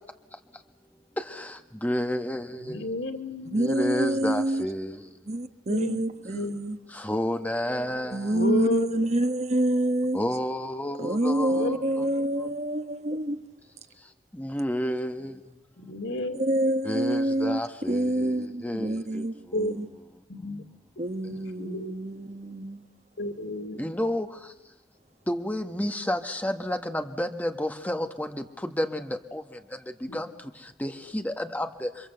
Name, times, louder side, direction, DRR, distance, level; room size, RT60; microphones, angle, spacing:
voice 1, 1.2-2.8 3.6-5.0 6.9-8.4 10.1-12.1 14.3-15.4 16.8-19.2 23.8-24.3 25.3-29.4 30.0-30.3 30.8-31.9, left 1 dB, 10° left, 1.3 m, -30 dB
voice 2, 2.6-3.7 5.7-6.0 6.3-6.6 8.3-9.1 11.5-11.8 15.8-16.4 18.6-18.7 19.5-19.7 20.3-20.6 21.6-21.9 23.2-23.9 30.1-30.2, left 2 dB, 90° left, 2.6 m, -31 dB
voice 3, 3.5-4.6 5.3-6.8 8.1-10.2 11.0-13.4 16.3-17.6 17.9-19.9 21.0-22.9, right 1 dB, 40° right, 1.3 m, -27 dB
28.5 x 24.0 x 7.9 m
head